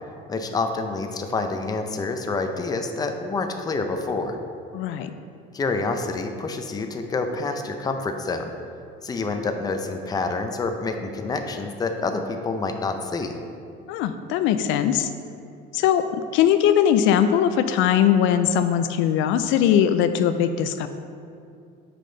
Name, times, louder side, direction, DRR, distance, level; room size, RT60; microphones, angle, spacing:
voice 1, 0.3-4.4 5.5-8.5 9.0-13.4, left 3 dB, 20° left, 5 dB, 0.5 m, -27 dB
voice 2, 4.7-5.1 13.9-15.1 15.7-16.1 16.3-20.9, left 9 dB, 70° left, 9 dB, 0.4 m, -20 dB
7.6 x 5.0 x 3.9 m, 2.5 s
cardioid pair, 125°, 21 cm